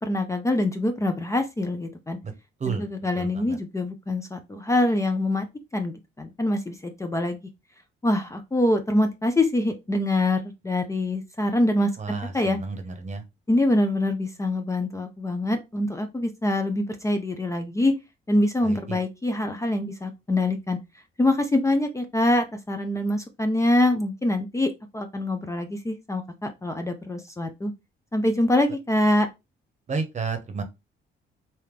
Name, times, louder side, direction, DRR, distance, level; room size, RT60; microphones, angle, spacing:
voice 1, 0.0-2.2 2.7-5.5 5.7-7.4 8.0-12.6 13.5-17.9 18.3-20.8 21.2-27.7 28.1-29.3, left 1 dB, 15° left, 0.5 m, -24 dB
voice 2, 3.2-3.6 12.0-13.2 18.6-19.0 29.9-30.6, right 4 dB, 35° right, 0.9 m, -31 dB
3.4 x 2.8 x 3.2 m
cardioid pair, 90°, 20 cm